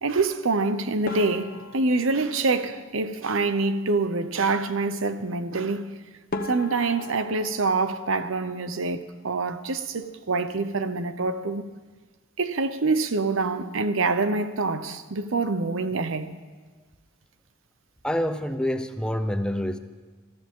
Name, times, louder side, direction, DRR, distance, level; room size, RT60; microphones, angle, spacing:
voice 1, 0.0-5.9 6.5-11.6 12.4-16.3, right 3 dB, 75° right, 0.8 m, -26 dB
sound 1, 1.1-3.5 5.8-5.9 6.3-9.1 9.3-10.1 10.4-10.6 10.9-11.0 11.7-12.0, left 2 dB, 45° left, 1.0 m, -39 dB
voice 2, 18.0-19.8, equal, 5° left, 0.6 m, -27 dB
21.5 x 14.0 x 3.7 m
head